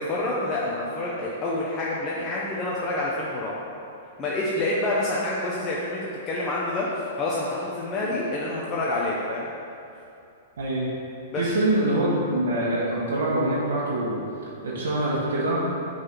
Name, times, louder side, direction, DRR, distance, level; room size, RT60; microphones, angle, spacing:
voice 1, 0.0-3.5 4.2-6.0 6.3-9.5 11.3-11.6, left 2 dB, 20° left, -6 dB, 0.7 m, -27 dB
voice 2, 10.6-10.9 11.4-14.1 14.6-15.6, right 1 dB, 85° right, -7 dB, 1.5 m, -24 dB
6.3 x 4.0 x 5.8 m, 2.7 s
hypercardioid pair, 155°, 0 cm